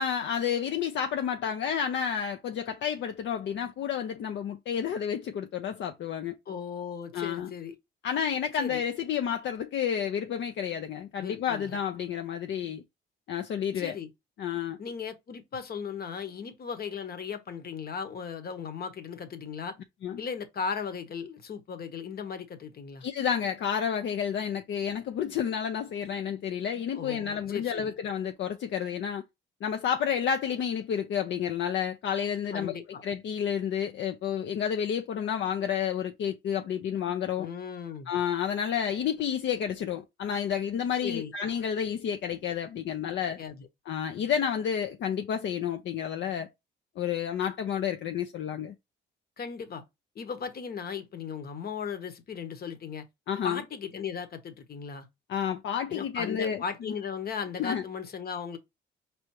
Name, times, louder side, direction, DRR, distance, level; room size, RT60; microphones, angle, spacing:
voice 1, 0.0-6.4 7.1-7.5 8.0-12.8 13.3-14.0 14.4-14.8 20.0-20.2 23.0-29.2 29.6-32.8 33.0-37.5 38.1-43.4 43.9-46.5 47.0-48.7 53.3-53.6 55.3-56.9 57.6-57.8, left 8 dB, 70° left, 0.6 m, -30 dB
voice 2, 6.5-7.8 8.6-8.8 11.2-11.8 13.7-14.1 14.8-19.7 20.2-23.0 26.9-27.9 32.5-33.0 37.4-38.1 41.0-41.3 43.4-43.7 49.4-49.8 50.1-53.0 53.4-55.1 55.9-58.6, left 6 dB, 50° left, 1.1 m, -37 dB
4.9 x 3.4 x 3.0 m
cardioid pair, 90°, 20 cm